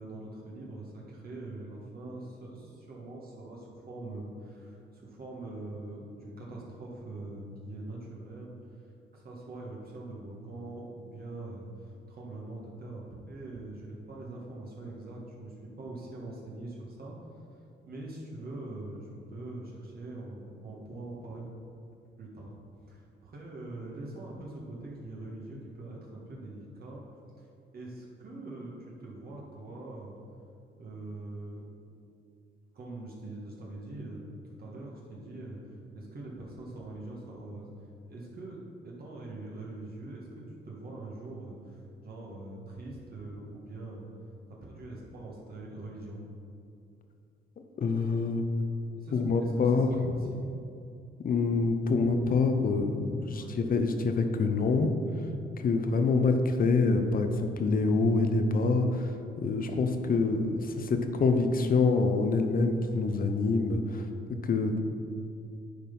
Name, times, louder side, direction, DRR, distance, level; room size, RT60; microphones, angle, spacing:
voice 1, 0.0-8.5 9.1-11.7 12.1-17.2 17.8-21.4 22.2-22.5 22.9-27.0 27.4-27.5 27.7-30.2 30.8-31.6 32.7-34.2 34.6-37.7 38.1-44.1 44.5-46.2 49.0-49.8 50.1-50.5 53.3-53.6, right 2 dB, 50° right, -4 dB, 1.8 m, -43 dB
voice 2, 47.8-48.4 49.1-50.1 51.2-54.9 55.6-59.1 59.4-64.1 64.4-64.8, left 3 dB, 45° left, 6 dB, 0.8 m, -26 dB
10.0 x 4.1 x 5.5 m, 2.5 s
cardioid pair, 90°, 20 cm